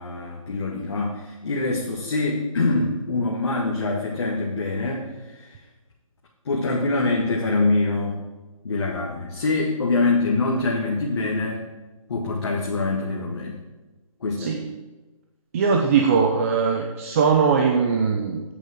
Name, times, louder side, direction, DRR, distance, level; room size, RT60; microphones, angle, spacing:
voice 1, 0.0-5.6 6.4-8.2 8.6-11.6 12.1-13.6 14.2-14.5, left 3 dB, 50° left, -2 dB, 1.7 m, -24 dB
voice 2, 15.5-18.4, right 5 dB, 25° right, 3 dB, 0.7 m, -20 dB
8.5 x 6.9 x 7.7 m, 1.2 s
figure-of-eight pair, 150°, 18 cm